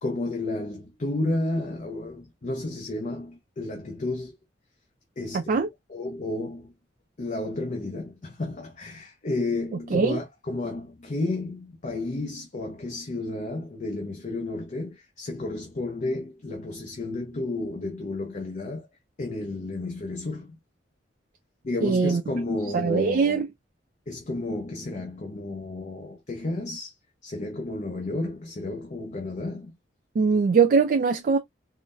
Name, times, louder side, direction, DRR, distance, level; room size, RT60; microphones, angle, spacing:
voice 1, 0.0-4.4 5.2-5.6 5.9-6.7 7.2-18.9 19.2-20.6 21.6-23.4 24.1-26.9 27.2-29.7, left 2 dB, 45° left, 0.6 m, -32 dB
voice 2, 5.3-5.7 9.9-10.2 21.8-22.2 22.7-23.5 30.2-31.4, right 5 dB, 50° right, 0.3 m, -21 dB
3.8 x 2.1 x 2.4 m
head